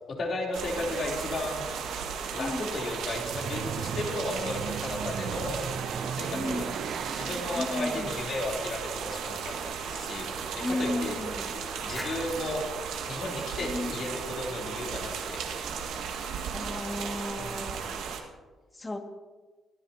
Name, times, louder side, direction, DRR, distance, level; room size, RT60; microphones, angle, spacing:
voice 1, 0.2-1.7 2.3-5.6 6.1-6.7 7.1-11.2 11.8-12.6 13.1-15.5 17.3-17.7, left 2 dB, 50° left, -1 dB, 3.3 m, -34 dB
sound 1, 0.5-18.2, right 6 dB, 90° right, 1.7 m, -35 dB
voice 2, 2.4-2.7 6.3-6.7 7.5-8.1 10.6-11.5 13.7-14.0 16.5-17.9 18.8-19.0, left 1 dB, 20° left, 3 dB, 2.0 m, -34 dB
sound 2, 3.0-8.4, right 7 dB, 65° right, 0.6 m, -37 dB
sound 3, 11.9-14.6, equal, 5° left, 4.0 m, -45 dB
24.5 x 11.5 x 2.8 m, 1.3 s
cardioid pair, 90°, 0 cm